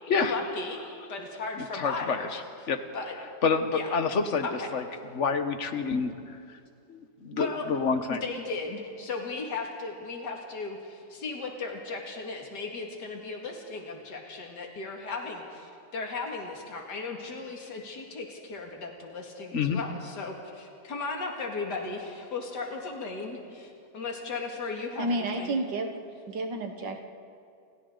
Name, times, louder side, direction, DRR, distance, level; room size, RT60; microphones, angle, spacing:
voice 1, 0.1-0.8 1.1-3.1 3.7-3.9 4.4-4.7 7.4-7.6 8.1-15.4 15.9-25.5, left 3 dB, 75° left, 0 dB, 2.8 m, -36 dB
voice 2, 1.7-2.4 2.7-2.8 3.4-4.5 4.7-4.8 5.1-6.1 6.9-8.2 19.5-19.8, left 5 dB, 45° left, 8 dB, 1.4 m, -27 dB
voice 3, 25.0-25.9 26.3-27.0, right 2 dB, 85° right, 4 dB, 2.1 m, -30 dB
29.5 x 29.0 x 4.0 m, 2.4 s
omnidirectional pair, 1.9 m